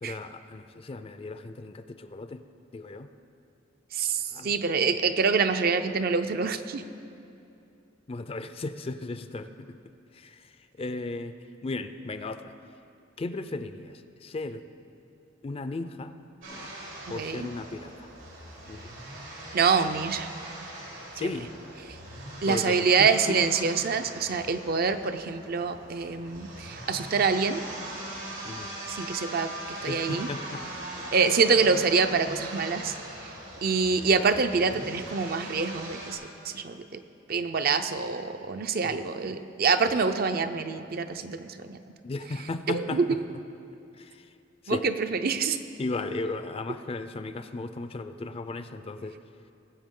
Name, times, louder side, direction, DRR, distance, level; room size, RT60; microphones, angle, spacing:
voice 1, 0.0-2.4 2.7-3.1 4.1-4.6 8.1-9.7 10.1-11.3 11.6-12.5 13.2-14.6 15.4-16.2 16.5-16.8 17.1-18.1 18.7-19.0 21.1-21.5 22.5-23.4 28.4-28.7 29.9-30.7 31.0-31.1 38.8-39.4 42.0-43.4 43.9-44.3 44.6-44.9 45.8-49.2, left 2 dB, 30° left, 10 dB, 0.4 m, -36 dB
voice 2, 3.9-6.8 17.1-17.5 19.5-20.3 21.2-21.3 22.4-27.6 28.9-30.3 31.1-33.0 33.2-33.3 33.6-36.2 36.4-37.0 37.3-41.8 42.7-43.1 44.7-45.6, right 5 dB, 50° right, 9 dB, 0.5 m, -26 dB
sound 1, 16.4-36.2, right 1 dB, 90° right, 2.8 m, -41 dB
20.5 x 7.9 x 3.7 m, 2.7 s
head